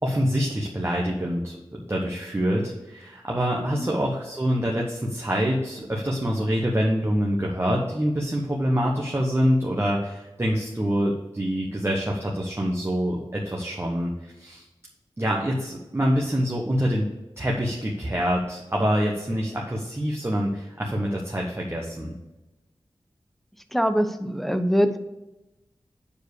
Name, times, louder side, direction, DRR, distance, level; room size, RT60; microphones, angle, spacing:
voice 1, 0.0-14.1 14.4-14.6 15.2-17.0 17.4-22.1, equal, 25° right, -2 dB, 1.3 m, -25 dB
voice 2, 23.7-25.0, equal, ahead, 9 dB, 0.7 m, -23 dB
7.1 x 4.7 x 6.8 m, 1.0 s
cardioid pair, 50°, 10 cm